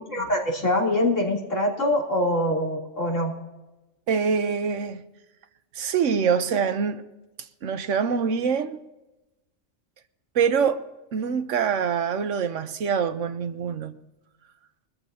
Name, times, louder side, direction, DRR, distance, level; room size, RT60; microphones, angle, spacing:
voice 1, 0.1-3.3, left 1 dB, 90° left, 3.7 m, -24 dB
voice 2, 4.1-5.0 5.7-7.0 7.6-8.8 10.3-10.8 11.1-13.9, right 6 dB, 80° right, 1.2 m, -24 dB
22.5 x 14.0 x 2.8 m
omnidirectional pair, 1.3 m